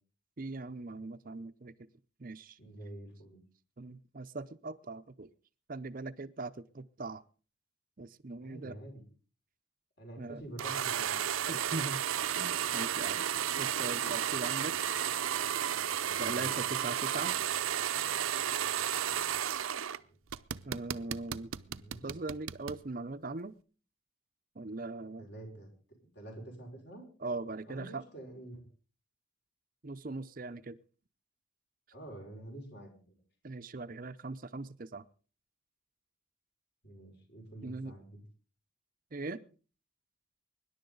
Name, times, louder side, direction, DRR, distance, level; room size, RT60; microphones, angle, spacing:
voice 1, 0.4-1.7 2.2-2.6 3.8-5.3 5.7-7.2 8.0-8.8 10.2-10.4 11.5-12.0 12.4-13.3 13.6-14.8 16.2-17.3 20.7-23.6 24.6-25.3 27.2-28.0 29.8-30.8 33.4-35.0 37.6-37.9 39.1-39.4, right 3 dB, 40° right, 0.6 m, -40 dB
voice 2, 2.6-3.4 8.4-9.0 10.0-11.2 16.1-16.6 21.8-22.1 25.2-25.7 26.2-27.0 27.7-28.6 31.9-32.9 36.8-38.2, right 1 dB, 50° left, 5.7 m, -47 dB
sound 1, 10.6-20.0 20.3-22.8, right 9 dB, 80° right, 0.6 m, -33 dB
24.0 x 11.0 x 3.9 m
head